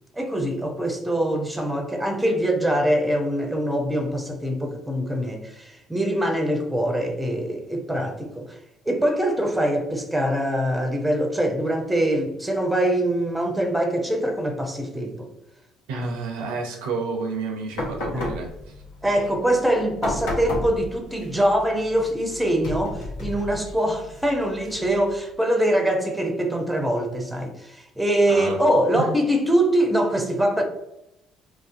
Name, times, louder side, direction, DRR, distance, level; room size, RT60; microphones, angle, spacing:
voice 1, 0.1-8.6 8.9-15.3 18.1-18.3 19.0-30.6, right 1 dB, 5° right, 0.6 m, -23 dB
voice 2, 15.9-18.8 28.3-28.6 28.9-29.1, right 4 dB, 75° right, 0.4 m, -30 dB
sound 1, 17.7-25.2, left 1 dB, 70° left, 0.7 m, -34 dB
2.5 x 2.1 x 2.5 m
hypercardioid pair, 55°, 0 cm